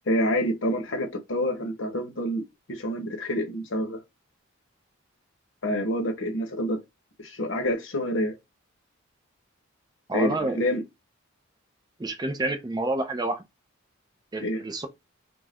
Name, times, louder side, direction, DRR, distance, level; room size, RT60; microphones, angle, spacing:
voice 1, 0.1-2.4 2.7-4.0 5.6-6.8 7.2-8.4 10.1-10.8 14.4-14.6, equal, 60° left, 0.7 m, -27 dB
voice 2, 10.1-10.6 12.0-13.4 14.3-14.9, right 2 dB, 20° right, 0.4 m, -29 dB
2.4 x 2.1 x 3.4 m
head